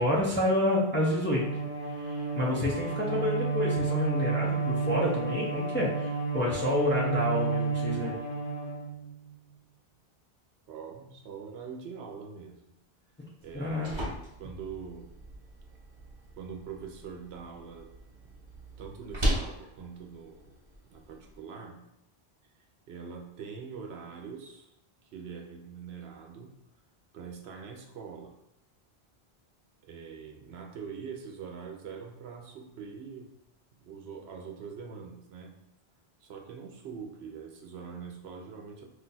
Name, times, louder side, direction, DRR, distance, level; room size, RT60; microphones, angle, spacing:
voice 1, 0.0-1.4 2.0-8.2 13.5-13.9, left 1 dB, 20° left, -5 dB, 0.3 m, -29 dB
Bowed string instrument, 0.9-9.3, right 4 dB, 70° left, 0.8 m, -31 dB
voice 2, 10.7-12.7 13.4-13.9 14.4-15.1 16.4-17.9 18.2-18.4 18.8-20.5 20.8-21.8 22.9-24.7 25.0-26.5 27.1-28.4 29.8-33.3 33.8-35.5 36.2-38.8, right 6 dB, 80° right, 2 dB, 0.8 m, -43 dB
sound 1, 13.4-21.4, equal, 30° right, 0.7 m, -37 dB
2.5 x 2.3 x 3.9 m, 0.83 s
omnidirectional pair, 1.1 m